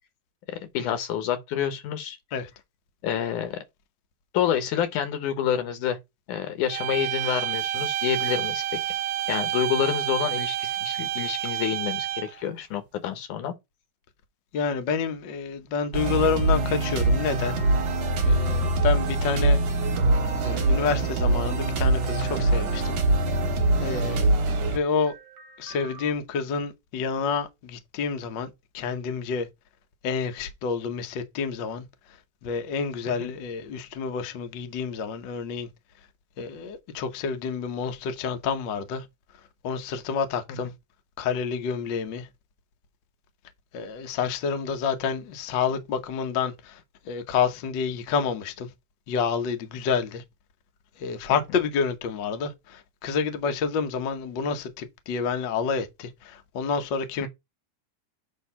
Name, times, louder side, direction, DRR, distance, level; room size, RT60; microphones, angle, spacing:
voice 1, 0.5-2.2 3.0-3.6 4.3-6.0 6.3-8.6 9.3-13.6 23.9-24.2 33.2-33.3 51.3-51.4 57.2-57.3, left 9 dB, 85° left, 2.7 m, -28 dB
sound 1, 6.7-12.4, right 13 dB, 80° right, 1.4 m, -29 dB
voice 2, 14.5-17.6 18.2-19.6 20.4-22.9 23.8-24.3 24.7-25.1 25.6-29.5 30.0-31.8 32.4-35.7 36.4-39.0 39.6-40.7 41.2-42.3 43.7-46.8 47.1-48.7 49.1-50.2 51.0-57.3, left 5 dB, 70° left, 1.1 m, -28 dB
sound 2, 15.9-26.1, right 2 dB, 60° right, 2.3 m, -24 dB
8.2 x 2.9 x 5.5 m
omnidirectional pair, 3.5 m